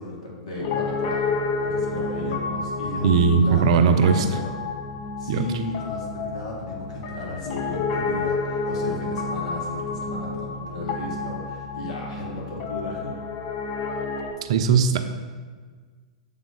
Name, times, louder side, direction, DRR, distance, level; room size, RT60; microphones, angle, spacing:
voice 1, 0.0-4.5 5.2-13.2, left 2 dB, 75° left, -3 dB, 1.8 m, -35 dB
Piano, 0.6-14.3, left 4 dB, 55° left, 0.8 m, -30 dB
voice 2, 3.0-4.2 5.3-5.4 14.5-15.0, right 6 dB, 60° right, 8 dB, 0.5 m, -18 dB
7.1 x 3.7 x 3.8 m, 1.5 s
hypercardioid pair, 105°, 3 cm